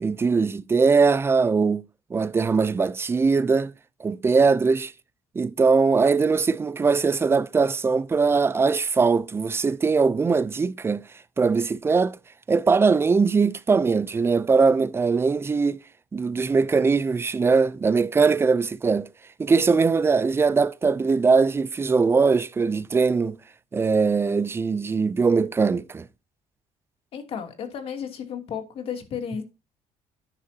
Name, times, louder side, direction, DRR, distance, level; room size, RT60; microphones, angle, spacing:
voice 1, 0.0-1.8 2.1-3.7 4.0-4.9 5.4-11.0 11.4-12.2 12.5-15.8 16.1-19.1 19.4-23.4 23.7-26.1, right 4 dB, 20° right, 0.5 m, -21 dB
voice 2, 27.1-29.4, left 7 dB, 55° left, 2.8 m, -33 dB
11.0 x 9.8 x 2.8 m
cardioid pair, 135°, 12 cm